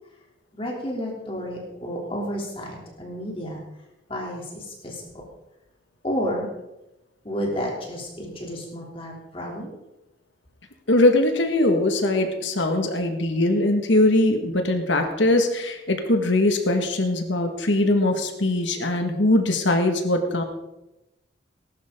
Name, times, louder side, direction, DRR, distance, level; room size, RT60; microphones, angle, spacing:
voice 1, 0.6-3.6 4.1-4.4 4.8-4.9 6.0-6.5 7.2-9.7, equal, 30° left, -2 dB, 3.3 m, -31 dB
voice 2, 10.9-20.4, left 1 dB, 75° left, 4 dB, 1.9 m, -21 dB
19.5 x 12.0 x 3.9 m, 0.94 s
head